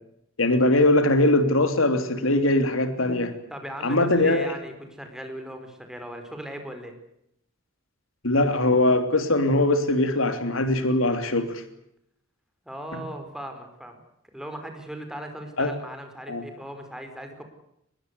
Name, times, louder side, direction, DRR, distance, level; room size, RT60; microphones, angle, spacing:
voice 1, 0.4-3.3 3.8-4.6 8.2-11.6 15.6-15.7 16.3-16.5, left 2 dB, 85° left, 9 dB, 3.2 m, -21 dB
voice 2, 3.5-6.9 12.6-14.0 14.3-17.4, right 1 dB, 5° right, 6 dB, 4.8 m, -38 dB
24.0 x 21.5 x 8.2 m, 0.77 s
head